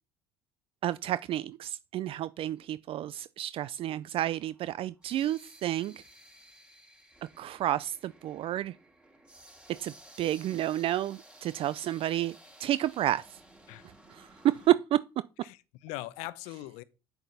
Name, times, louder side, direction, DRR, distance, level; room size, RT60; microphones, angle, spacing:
voice 1, 0.8-6.0 7.4-8.7 9.8-12.3 12.6-13.2 14.1-14.3 14.7-15.0, right 13 dB, 50° right, 0.3 m, -30 dB
sound 1, 4.2-14.7, right 1 dB, 5° right, 3.8 m, -55 dB
voice 2, 15.4-16.8, left 17 dB, 75° left, 0.7 m, -41 dB
8.1 x 6.6 x 4.0 m
hypercardioid pair, 75°, 12 cm